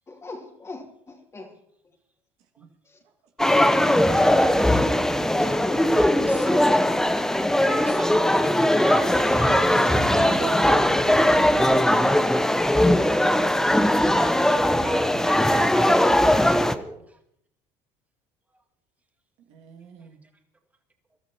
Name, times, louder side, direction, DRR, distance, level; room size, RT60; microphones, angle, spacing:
voice 1, 0.1-1.6 2.9-3.0 5.4-6.4, left 3 dB, 25° left, 2 dB, 2.7 m, -40 dB
swimming pool lessons, 3.4-16.8, left 1 dB, 5° left, 0.9 m, -20 dB
voice 2, 3.7-4.1 6.3-6.7 7.6-10.0 14.1-17.2, right 2 dB, 10° right, 2 dB, 2.2 m, -36 dB
voice 3, 9.5-12.2 17.0-17.1 19.5-20.2, right 6 dB, 70° right, 3 dB, 2.2 m, -37 dB
25.5 x 12.5 x 2.9 m, 0.72 s
supercardioid pair, 95°, 12 cm